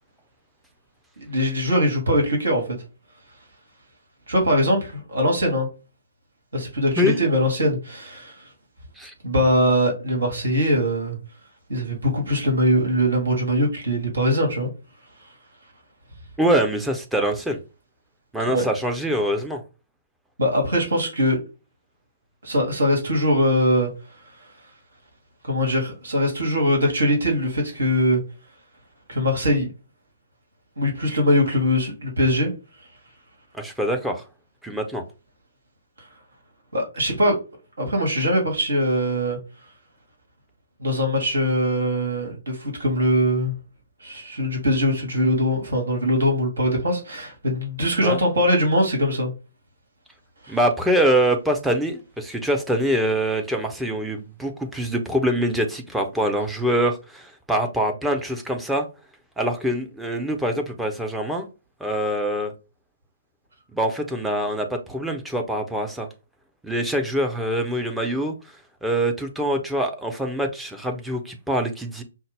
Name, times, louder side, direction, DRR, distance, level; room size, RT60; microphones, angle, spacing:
voice 1, 1.2-2.6 4.3-5.7 6.5-8.4 9.2-11.2 11.7-14.7 18.5-18.6 20.4-21.4 22.4-23.9 25.4-28.2 29.1-29.7 30.8-32.5 36.7-37.4 37.8-39.4 40.8-43.5 44.0-49.3 50.4-50.6, equal, 70° right, 1.8 m, -22 dB
voice 2, 16.4-17.6 18.3-19.6 33.6-34.2 34.6-35.0 48.0-48.2 50.5-58.9 59.4-61.5 61.8-62.5 63.7-66.1 66.6-68.3 68.8-72.0, equal, 5° right, 0.7 m, -24 dB
5.5 x 2.0 x 3.4 m
figure-of-eight pair, 125°, 0 cm